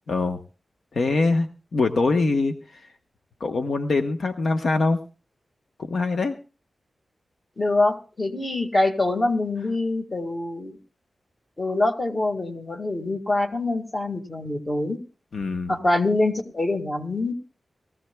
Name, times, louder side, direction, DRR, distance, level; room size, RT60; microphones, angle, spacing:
voice 1, 0.1-0.4 0.9-2.9 3.4-5.0 5.8-6.3 15.3-15.7, left 3 dB, 70° left, 5 dB, 1.0 m, -23 dB
voice 2, 7.6-10.8 11.6-15.0 15.7-17.3, left 2 dB, 30° left, 4 dB, 1.9 m, -24 dB
22.5 x 15.0 x 2.3 m, 0.35 s
wide cardioid pair, 125°, 0 cm